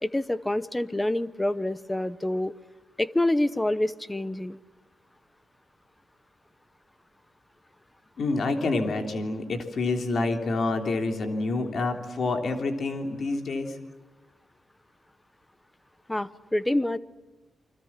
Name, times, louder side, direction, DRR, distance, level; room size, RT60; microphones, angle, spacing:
voice 1, 0.0-2.5 3.0-4.6 16.1-17.0, left 1 dB, 10° left, 15 dB, 0.8 m, -27 dB
voice 2, 8.2-13.8, left 3 dB, 45° left, 5 dB, 3.2 m, -28 dB
29.0 x 25.0 x 7.4 m, 1.2 s
wide cardioid pair, 180°, 0 cm